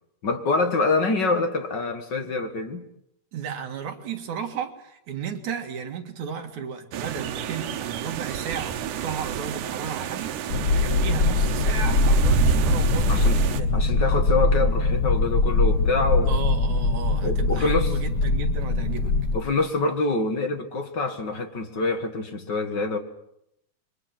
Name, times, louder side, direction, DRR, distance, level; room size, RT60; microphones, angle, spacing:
voice 1, 0.2-2.8 13.1-13.4 13.7-16.3 17.2-17.9 19.3-23.0, left 3 dB, 40° left, 1.9 m, -25 dB
voice 2, 3.3-13.9 16.3-19.1, right 7 dB, 70° right, 3.3 m, -34 dB
sound 1, 6.9-13.6, right 8 dB, 90° right, 2.6 m, -29 dB
sound 2, 10.5-19.4, left 3 dB, 90° left, 0.8 m, -22 dB
28.0 x 23.0 x 6.0 m
omnidirectional pair, 3.6 m